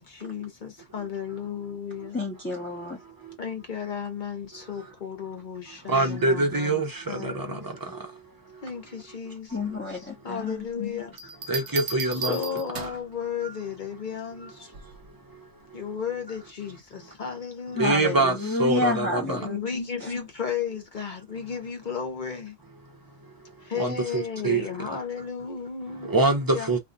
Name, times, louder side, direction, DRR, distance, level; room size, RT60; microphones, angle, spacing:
voice 1, 0.0-2.2 3.4-6.8 7.1-7.6 8.6-9.8 10.2-11.1 12.3-14.7 15.7-18.0 19.4-22.6 23.6-26.1 26.5-26.7, left 7 dB, 45° left, 0.8 m, -34 dB
voice 2, 2.1-3.0 9.5-10.7 17.8-19.6 20.0-20.1, left 2 dB, 10° left, 0.7 m, -29 dB
voice 3, 5.9-7.7 11.5-12.4 17.8-19.4 23.8-24.7 26.0-26.8, right 2 dB, 30° right, 0.4 m, -24 dB
Bell, 11.2-13.1 14.7-15.1, right 5 dB, 65° right, 0.9 m, -35 dB
2.6 x 2.2 x 3.8 m
omnidirectional pair, 1.3 m